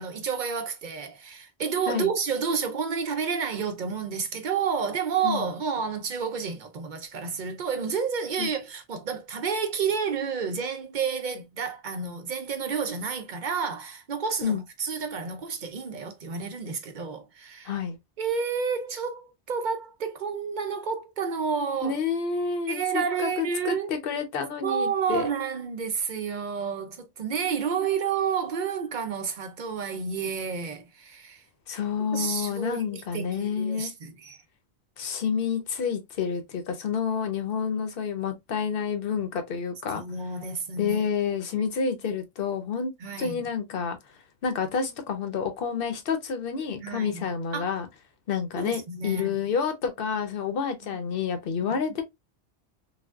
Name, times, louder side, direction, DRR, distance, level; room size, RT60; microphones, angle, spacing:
voice 1, 0.0-17.7 18.2-22.0 22.7-23.9 24.6-31.4 32.1-34.4 39.9-41.1 41.5-41.6 43.0-43.5 46.8-47.7 48.5-49.4 51.6-51.7, right 6 dB, 55° right, 0.6 m, -30 dB
voice 2, 17.7-18.0 21.8-25.3 31.7-33.9 35.0-40.0 40.8-42.9 43.2-44.0 44.4-47.9 48.3-52.0, left 6 dB, 60° left, 0.9 m, -29 dB
3.3 x 2.3 x 2.3 m
omnidirectional pair, 1.1 m